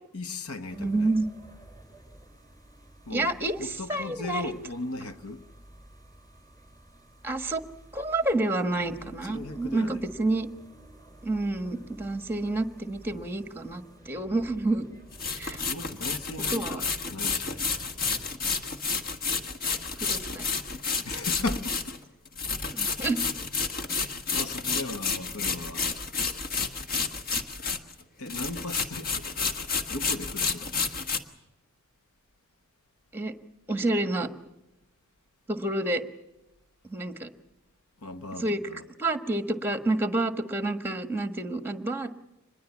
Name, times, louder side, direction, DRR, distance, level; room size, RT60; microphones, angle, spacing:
voice 1, 0.1-1.1 3.1-3.3 3.6-5.5 9.0-10.0 15.7-17.7 21.0-22.0 22.8-22.9 23.6-23.8 24.3-25.9 28.2-29.5 29.9-30.7 38.0-38.9, left 2 dB, 85° left, 1.2 m, -37 dB
sound 1, 0.7-18.3, right 1 dB, 15° left, 4.7 m, -51 dB
voice 2, 0.7-1.2 3.1-4.5 7.2-7.6 7.9-10.5 11.2-14.8 15.4-15.7 16.5-16.8 20.0-20.5 22.7-23.2 26.9-27.0 33.1-33.3 33.7-34.3 35.5-36.0 36.8-37.3 38.4-38.6 39.0-42.2, right 2 dB, 10° right, 1.3 m, -29 dB
sound 2, 13.7-13.8 15.1-28.0 28.3-31.2, left 4 dB, 45° left, 1.5 m, -30 dB
25.5 x 21.0 x 7.2 m
head